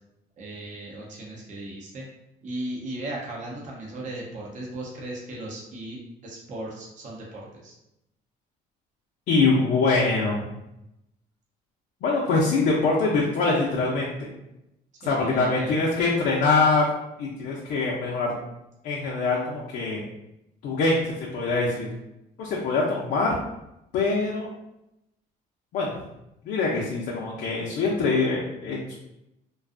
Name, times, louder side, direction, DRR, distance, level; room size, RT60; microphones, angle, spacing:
voice 1, 0.4-2.0 2.4-7.7 15.0-15.7, right 1 dB, 45° right, -3 dB, 0.6 m, -36 dB
voice 2, 9.3-10.4 12.0-14.3 15.1-16.9 17.2-18.3 18.8-20.0 20.6-21.9 22.4-23.3 23.9-24.5 25.7-25.9 26.5-29.0, left 3 dB, 70° left, -3 dB, 0.5 m, -24 dB
2.5 x 2.3 x 2.4 m, 0.88 s
cardioid pair, 110°, 17 cm